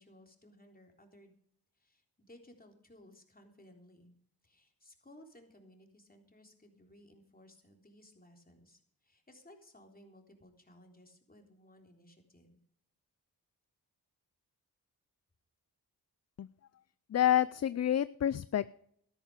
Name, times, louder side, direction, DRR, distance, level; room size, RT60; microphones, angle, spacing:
voice 1, 0.0-1.4 1.8-4.2 4.4-12.6, left 1 dB, 20° left, 3 dB, 3.7 m, -59 dB
voice 2, 17.1-18.7, left 11 dB, 40° left, 18 dB, 0.5 m, -28 dB
13.0 x 11.0 x 5.0 m, 0.68 s
cardioid pair, 55°, 41 cm